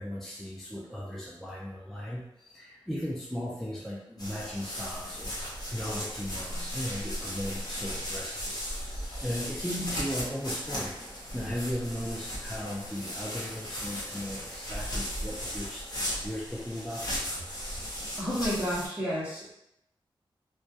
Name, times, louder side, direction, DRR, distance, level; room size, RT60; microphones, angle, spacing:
voice 1, 0.0-10.9 11.3-17.1, equal, 5° left, -5 dB, 0.3 m, -37 dB
sound 1, 4.2-18.9, equal, 45° left, 0.8 m, -36 dB
voice 2, 18.2-19.5, equal, 15° right, -9 dB, 0.8 m, -31 dB
2.2 x 2.1 x 2.7 m, 0.81 s
wide cardioid pair, 130°, 9 cm